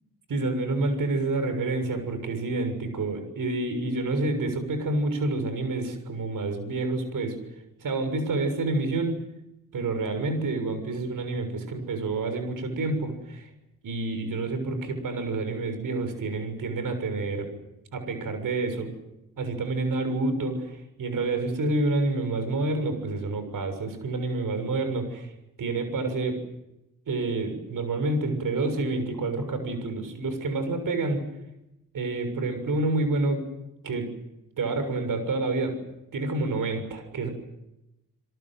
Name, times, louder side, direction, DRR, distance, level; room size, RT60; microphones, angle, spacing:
voice 1, 0.3-7.4 7.8-9.2 9.7-13.5 13.8-17.5 17.9-18.9 19.4-25.3 25.6-26.4 27.1-31.2 31.9-33.4 33.8-34.1 34.6-35.8 36.1-37.3, right 2 dB, 80° right, 8 dB, 6.9 m, -28 dB
28.5 x 23.0 x 7.7 m, 0.91 s
wide cardioid pair, 110°, 32 cm